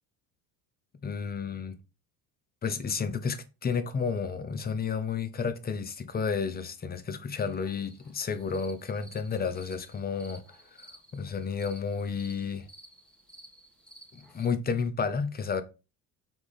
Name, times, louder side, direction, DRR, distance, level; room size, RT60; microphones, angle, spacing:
voice 1, 1.0-1.8 2.6-10.4 10.7-12.7 14.1-15.6, left 5 dB, 20° left, 0.6 m, -31 dB
sound 1, 7.3-14.5, right 1 dB, ahead, 1.2 m, -54 dB
3.6 x 2.9 x 4.1 m
supercardioid pair, 75°, 46 cm